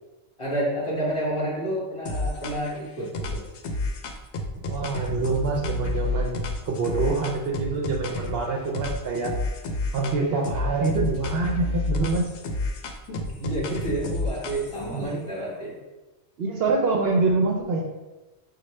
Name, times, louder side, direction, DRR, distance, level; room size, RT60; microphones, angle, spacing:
voice 1, 0.4-3.4 13.1-15.7, right 1 dB, 25° left, -6 dB, 1.4 m, -29 dB
sound 1, 2.1-2.8 3.1-8.4 8.7-10.2 10.4-14.9, left 2 dB, 75° left, 0.8 m, -30 dB
voice 2, 4.7-9.4 9.9-12.3 14.9-15.3 16.4-17.8, right 3 dB, 65° right, 0 dB, 0.7 m, -25 dB
6.2 x 2.3 x 3.1 m, 1.1 s
omnidirectional pair, 1.2 m